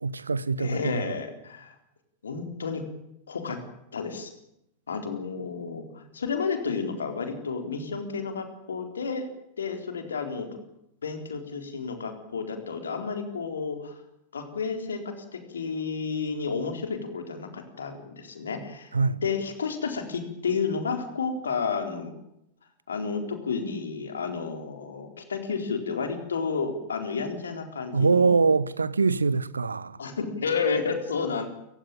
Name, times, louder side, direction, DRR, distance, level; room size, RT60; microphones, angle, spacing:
voice 1, 0.0-1.2 18.9-19.2 27.9-30.0, right 4 dB, 75° right, 1.0 m, -24 dB
voice 2, 0.6-1.7 2.2-2.8 3.3-3.6 3.9-4.3 4.9-9.3 9.6-10.5 11.0-13.9 14.3-15.0 15.3-18.9 19.2-22.1 22.9-28.5 30.0-31.4, left 5 dB, 70° left, 4.0 m, -31 dB
28.0 x 16.0 x 9.0 m
figure-of-eight pair, 90°, 0 cm